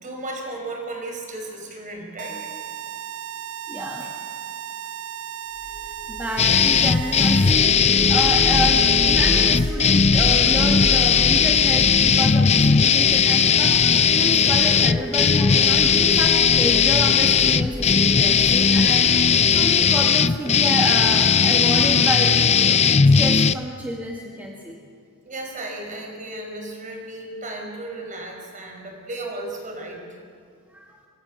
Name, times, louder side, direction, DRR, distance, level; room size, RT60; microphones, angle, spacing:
voice 1, 0.0-2.4 25.2-30.0, right 2 dB, 35° right, 2 dB, 5.5 m, -34 dB
sound 1, 2.2-7.5, right 9 dB, 70° right, 0.9 m, -35 dB
voice 2, 3.7-4.1 5.8-22.8 23.2-24.8 30.7-30.9, equal, 10° right, -2 dB, 2.1 m, -29 dB
sound 2, 5.6-20.7, equal, 85° left, 7.0 m, -32 dB
sound 3, 6.4-23.5, left 6 dB, 30° left, 0.5 m, -17 dB
25.5 x 24.0 x 6.5 m, 2.3 s
head